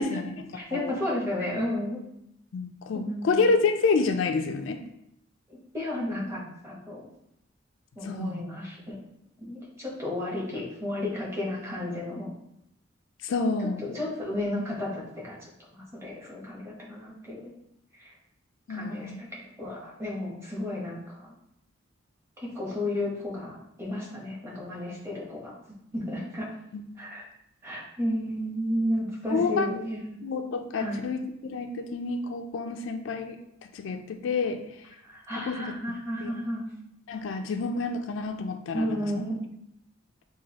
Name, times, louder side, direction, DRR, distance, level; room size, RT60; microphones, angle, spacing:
voice 1, 0.0-0.4 0.7-0.9 2.5-4.8 8.0-8.4 13.2-13.8 18.7-19.2 26.7-26.8 29.3-29.7 30.2-33.4 33.7-34.6 35.3-35.8 36.2-36.3 37.1-38.9, left 4 dB, 70° left, 6 dB, 0.3 m, -28 dB
voice 2, 0.5-2.0 2.9-3.4 5.7-7.0 8.0-8.9 9.4-12.3 13.8-15.3 15.7-17.5 18.0-18.1 18.7-21.3 22.4-25.5 25.9-26.5 27.0-27.3 27.6-30.2 30.7-31.1 35.1-36.7 38.7-39.4, left 1 dB, 10° right, -5 dB, 1.0 m, -33 dB
5.9 x 2.3 x 2.9 m, 0.80 s
head